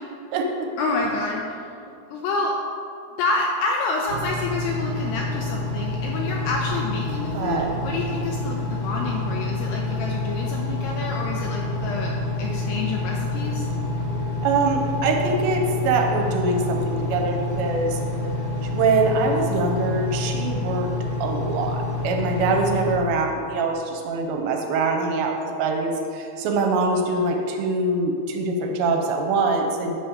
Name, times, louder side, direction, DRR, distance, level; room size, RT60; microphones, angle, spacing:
voice 1, 0.8-1.4 2.1-2.6 3.2-13.7, left 3 dB, 85° left, 0 dB, 2.4 m, -28 dB
Engine, 4.1-23.0, left 2 dB, 60° right, 2.4 m, -27 dB
voice 2, 7.3-7.7 14.4-18.0 18.6-20.9 21.2-30.0, right 3 dB, 75° right, 2 dB, 2.9 m, -23 dB
9.0 x 5.3 x 7.0 m, 2.5 s
omnidirectional pair, 5.4 m